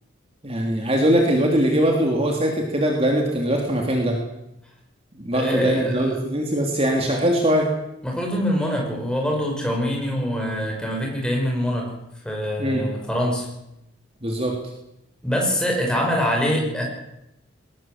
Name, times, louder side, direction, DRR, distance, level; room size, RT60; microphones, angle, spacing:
voice 1, 0.4-4.2 5.2-7.7 12.6-12.8 14.2-14.6, right 1 dB, 30° right, 1 dB, 3.1 m, -21 dB
voice 2, 5.3-6.1 8.0-11.9 12.2-13.5 15.2-16.9, equal, 5° left, -1 dB, 5.9 m, -24 dB
21.0 x 19.5 x 8.0 m, 0.87 s
head